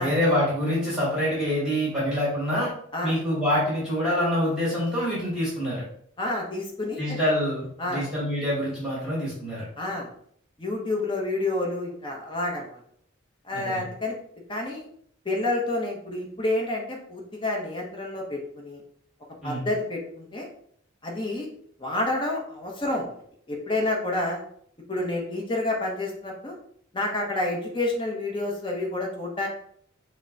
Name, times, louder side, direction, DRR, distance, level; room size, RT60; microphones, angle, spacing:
voice 1, 0.0-2.7 3.0-5.8 7.0-9.6 13.5-13.9 19.4-19.7, equal, 5° right, -8 dB, 1.8 m, -26 dB
voice 2, 6.2-7.2 7.8-8.0 9.8-10.1 10.6-12.8 13.4-14.1 14.5-14.8 15.2-18.8 19.4-20.5 21.0-21.5 21.8-23.1 23.5-24.4 24.9-26.5 26.9-29.5, left 2 dB, 25° left, -1 dB, 0.9 m, -29 dB
5.9 x 2.2 x 3.9 m, 0.65 s
head